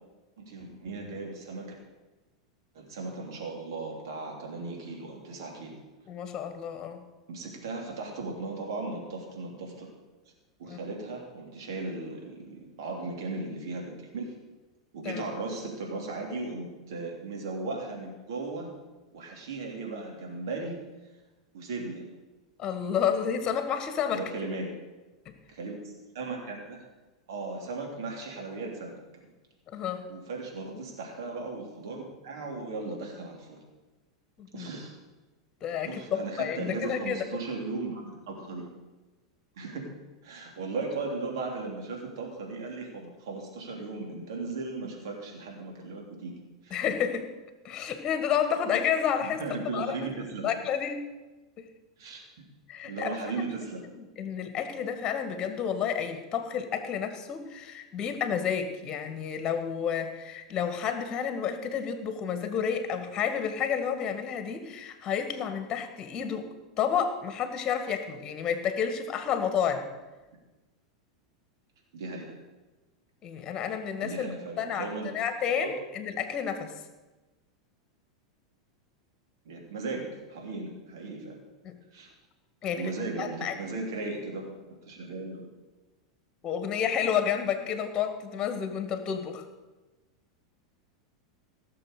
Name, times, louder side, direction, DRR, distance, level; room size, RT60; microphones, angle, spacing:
voice 1, 0.4-1.7 2.7-5.7 7.3-9.9 10.6-14.3 14.9-18.7 19.1-20.8 21.5-22.0 24.1-24.7 25.5-26.8 27.3-29.0 30.1-33.6 34.5-34.9 35.8-38.7 39.6-39.9 40.2-46.3 46.6-46.8 49.2-50.6 52.0-52.5 52.8-53.9 71.9-72.3 74.0-75.1 75.5-75.7 79.4-81.4 81.9-82.1 82.8-84.5 84.9-85.5, right 3 dB, 60° right, 0 dB, 3.1 m, -37 dB
voice 2, 6.1-7.0 10.7-10.8 15.0-15.2 22.6-24.2 29.7-30.1 34.4-34.7 35.6-37.2 46.7-47.3 47.6-49.4 49.7-50.0 50.4-51.0 51.6-51.7 52.7-53.2 54.0-66.5 66.8-69.9 73.2-74.3 74.6-76.7 81.6-81.8 82.6-82.9 83.2-83.8 86.4-89.5, left 8 dB, 30° left, 8 dB, 1.8 m, -30 dB
16.5 x 6.9 x 6.7 m, 1.2 s
figure-of-eight pair, 90°, 2 cm